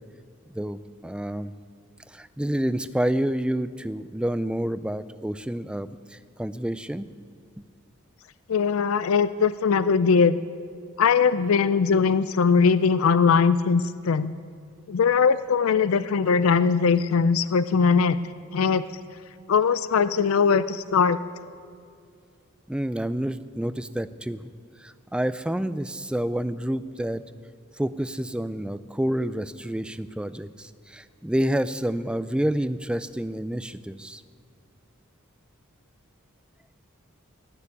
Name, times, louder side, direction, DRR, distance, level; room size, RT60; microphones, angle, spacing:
voice 1, 0.5-1.5 2.1-7.1 22.7-24.5 24.8-27.2 27.8-34.2, right 1 dB, 5° right, 14 dB, 0.3 m, -29 dB
voice 2, 8.5-10.4 11.0-14.3 14.9-18.2 18.5-18.8 19.5-21.2, left 5 dB, 90° left, 14 dB, 0.4 m, -20 dB
18.5 x 6.9 x 9.7 m, 2.3 s
head